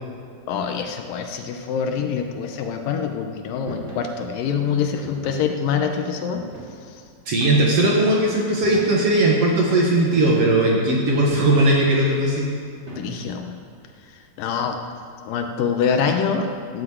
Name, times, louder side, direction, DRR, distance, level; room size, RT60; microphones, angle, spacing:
voice 1, 0.5-6.4 6.9-7.0 13.0-13.6 14.4-14.8 15.3-16.8, left 6 dB, 75° left, 5 dB, 2.4 m, -25 dB
sound 1, 3.7-4.1 5.0-5.5 6.4-6.9 7.4-7.9 8.6-9.2 10.1-10.6 11.1-11.8 12.9-13.5, equal, 20° right, 2.5 m, -37 dB
voice 2, 7.3-12.5, right 1 dB, 55° right, -2 dB, 2.0 m, -18 dB
14.5 x 7.3 x 7.9 m, 2.1 s
omnidirectional pair, 4.2 m